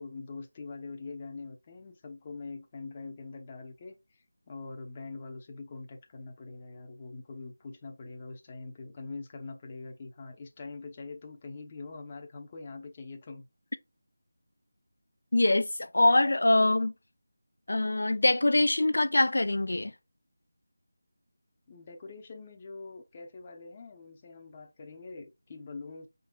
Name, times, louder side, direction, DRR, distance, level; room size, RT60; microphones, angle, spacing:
voice 1, 0.0-13.5 21.7-26.1, left 3 dB, 25° left, 0.8 m, -44 dB
voice 2, 15.3-16.9 17.7-19.9, left 2 dB, 70° left, 0.4 m, -24 dB
5.4 x 3.9 x 2.3 m
figure-of-eight pair, 170°, 0 cm